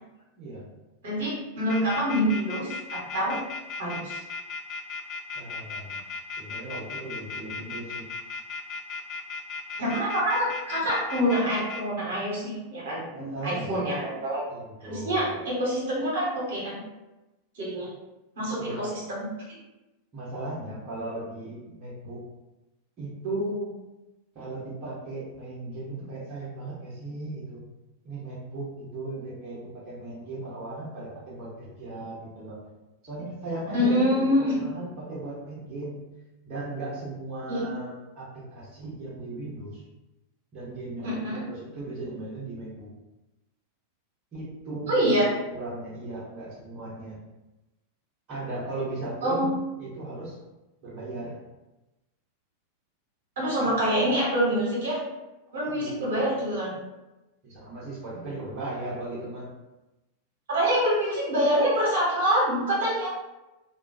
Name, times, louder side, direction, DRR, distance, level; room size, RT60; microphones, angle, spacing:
voice 1, 1.0-3.4 3.8-4.2 9.8-14.5 14.8-16.8 17.5-17.9 18.4-19.3 33.7-34.6 37.5-37.6 41.0-41.4 44.9-45.3 49.2-49.5 53.4-55.0 55.5-56.7 60.5-63.1, equal, 60° right, -6 dB, 1.0 m, -26 dB
sound 1, 1.7-11.8, left 4 dB, 30° left, 0.3 m, -36 dB
voice 2, 5.3-6.0 6.4-8.0 13.1-13.8 14.5-15.4 18.6-18.9 20.1-22.2 23.0-23.7 24.3-27.6 28.0-32.6 33.0-36.0 36.4-38.2 38.5-39.8 40.5-42.9 44.3-45.2 45.5-47.2 48.3-49.5 49.8-50.4 50.8-51.4 55.7-56.4 57.4-59.5, right 2 dB, 35° right, -8 dB, 0.9 m, -36 dB
2.4 x 2.3 x 2.5 m, 1.0 s
figure-of-eight pair, 90°, 0 cm